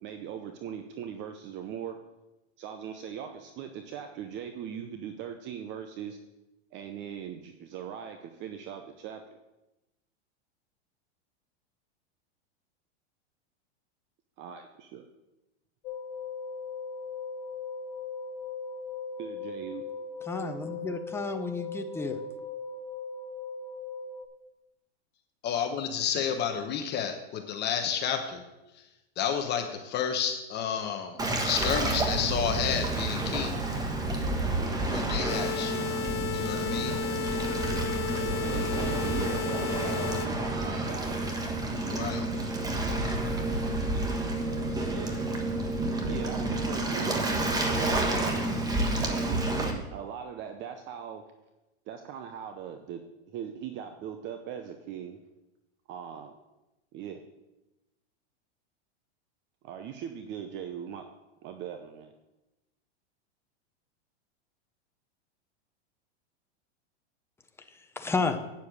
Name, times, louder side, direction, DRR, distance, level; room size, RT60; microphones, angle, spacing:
voice 1, 0.0-2.0 2.6-6.2 6.7-9.2 14.4-15.1 19.2-19.8 38.2-41.2 44.8-45.1 46.1-47.2 47.7-48.3 49.1-51.2 51.9-53.0 53.3-55.2 55.9-56.3 56.9-57.2 59.6-61.1 61.4-62.1, right 8 dB, 35° right, 6 dB, 0.7 m, -40 dB
sound 1, 15.8-24.3, left 4 dB, 50° left, 3.4 m, -39 dB
voice 2, 20.2-22.2 68.0-68.4, left 4 dB, 5° left, 6 dB, 0.7 m, -31 dB
voice 3, 25.4-28.4 28.7-28.9 29.2-33.6 34.9-35.7 36.3-37.0 41.9-42.3, left 8 dB, 30° left, 5 dB, 1.0 m, -31 dB
Waves surf, 31.2-49.7, right 2 dB, 10° right, 1.3 m, -30 dB
sound 2, 35.3-40.3, left 7 dB, 80° left, 1.1 m, -33 dB
9.1 x 7.3 x 6.4 m, 1.0 s
supercardioid pair, 135°, 34 cm